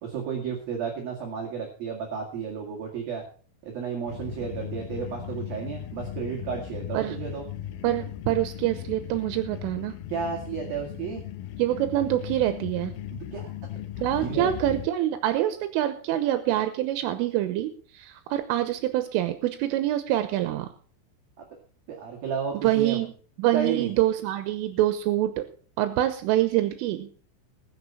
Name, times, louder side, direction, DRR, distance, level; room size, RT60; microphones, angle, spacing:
voice 1, 0.0-3.2 3.6-7.4 10.1-11.2 13.1-13.5 14.2-14.5 21.9-23.0 23.5-23.9, right 6 dB, 55° right, 1 dB, 3.5 m, -32 dB
sound 1, 4.1-14.9, left 11 dB, 90° left, 2.0 m, -37 dB
voice 2, 7.8-9.9 11.6-12.9 14.0-20.7 22.6-23.1 23.4-25.5 25.8-27.1, right 13 dB, 85° right, 9 dB, 3.5 m, -25 dB
21.0 x 7.0 x 5.6 m, 0.43 s
omnidirectional pair, 5.8 m